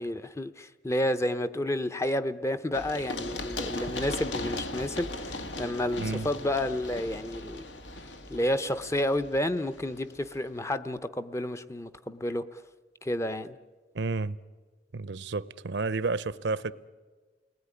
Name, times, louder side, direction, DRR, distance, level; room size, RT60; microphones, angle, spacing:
voice 1, 0.0-7.6 8.3-12.6 13.0-13.6, left 1 dB, 15° left, 0.8 m, -30 dB
Run, 2.7-10.4, left 2 dB, 75° left, 1.8 m, -38 dB
voice 2, 13.9-14.4 14.9-16.7, right 3 dB, 70° right, 0.7 m, -31 dB
29.0 x 20.0 x 9.8 m
head